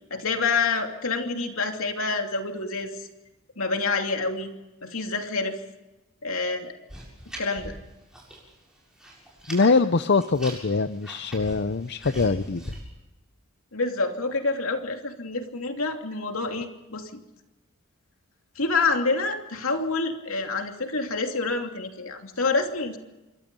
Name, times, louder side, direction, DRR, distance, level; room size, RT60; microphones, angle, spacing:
voice 1, 0.1-2.9 3.6-4.5 4.8-5.6 6.2-6.8 7.4-7.7 13.7-17.1 18.5-23.0, left 3 dB, 75° left, 4 dB, 2.8 m, -27 dB
sound 1, 6.9-8.5 8.8-9.7 10.1-12.8, right 1 dB, 5° right, 7.2 m, -41 dB
voice 2, 9.5-12.7, left 4 dB, 50° left, 12 dB, 0.6 m, -23 dB
27.0 x 23.5 x 5.4 m, 1.0 s
head